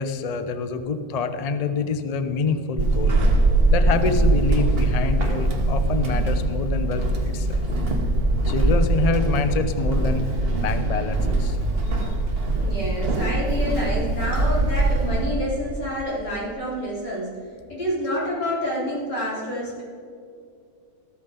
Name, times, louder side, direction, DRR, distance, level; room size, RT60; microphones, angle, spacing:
voice 1, 0.0-3.2 3.7-7.6 8.5-10.3 10.6-11.6 12.0-12.1, left 4 dB, 90° left, 9 dB, 0.3 m, -26 dB
Walk footsteps / Squeak, 2.8-15.4, right 2 dB, 35° right, 1.4 m, -22 dB
voice 2, 12.5-17.3 17.7-19.8, equal, 70° left, -6 dB, 4.6 m, -28 dB
14.0 x 13.5 x 3.9 m, 2.4 s
omnidirectional pair, 1.9 m